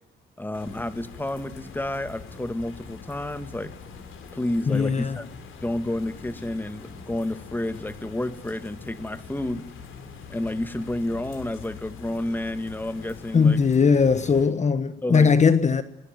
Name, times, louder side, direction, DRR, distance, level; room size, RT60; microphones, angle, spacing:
voice 1, 0.4-3.7 4.3-5.3 5.6-9.7 10.3-13.6 15.0-15.3, left 1 dB, 10° left, 2.0 m, -30 dB
sound 1, 0.5-14.5, left 5 dB, 85° left, 6.3 m, -43 dB
voice 2, 4.7-5.2 13.3-15.8, left 5 dB, 35° left, 1.3 m, -19 dB
26.0 x 22.5 x 9.3 m
cardioid pair, 90°, 20 cm